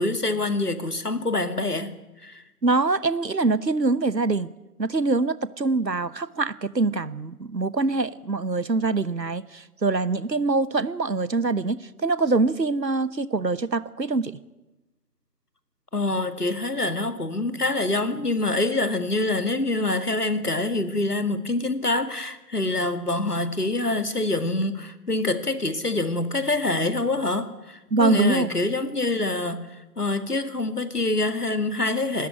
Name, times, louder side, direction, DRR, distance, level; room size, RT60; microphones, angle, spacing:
voice 1, 0.0-1.9 2.2-2.4 15.9-32.3, left 2 dB, 65° left, 2.1 m, -25 dB
voice 2, 2.6-4.5 4.8-14.4 27.9-28.6, right 3 dB, 90° right, 1.2 m, -24 dB
24.0 x 13.0 x 9.9 m
figure-of-eight pair, 175°, 49 cm